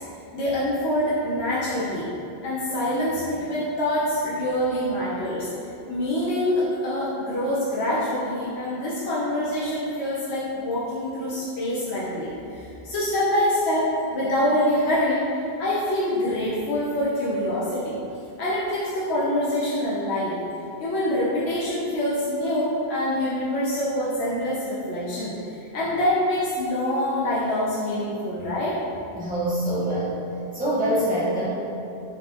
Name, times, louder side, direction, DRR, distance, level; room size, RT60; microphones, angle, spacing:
voice 1, 0.3-2.1 2.4-5.5 5.9-17.9 18.4-20.4 20.8-28.8, left 1 dB, 85° left, -8 dB, 1.0 m, -25 dB
voice 2, 29.1-30.2 30.5-31.5, right 1 dB, 10° right, -10 dB, 1.1 m, -24 dB
3.9 x 3.7 x 2.8 m, 2.7 s
omnidirectional pair, 1.1 m